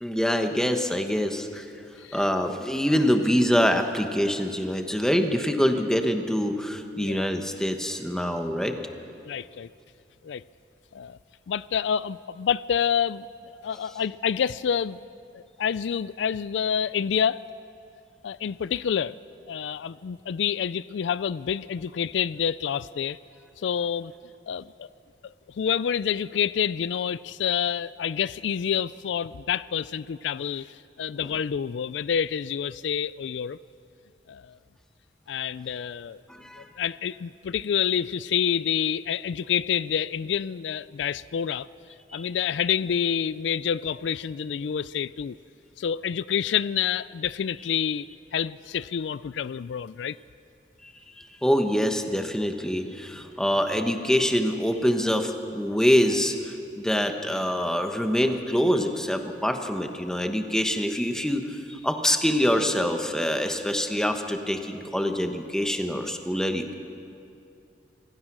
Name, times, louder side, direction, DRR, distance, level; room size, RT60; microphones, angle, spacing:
voice 1, 0.0-1.7 2.1-8.8 36.3-36.7 50.8-50.9 51.2-66.7, equal, 5° left, 5 dB, 1.2 m, -25 dB
voice 2, 6.9-7.3 9.2-9.7 10.2-10.4 10.9-11.2 11.5-13.3 13.5-15.0 15.3-17.4 18.2-19.2 19.5-23.2 23.6-24.1 24.5-24.9 25.2-33.6 34.3-34.6 35.3-36.2 36.8-41.7 42.1-45.4 45.8-48.1 48.3-50.2, left 8 dB, 80° left, 18 dB, 0.4 m, -28 dB
26.0 x 16.5 x 6.2 m, 2.6 s
head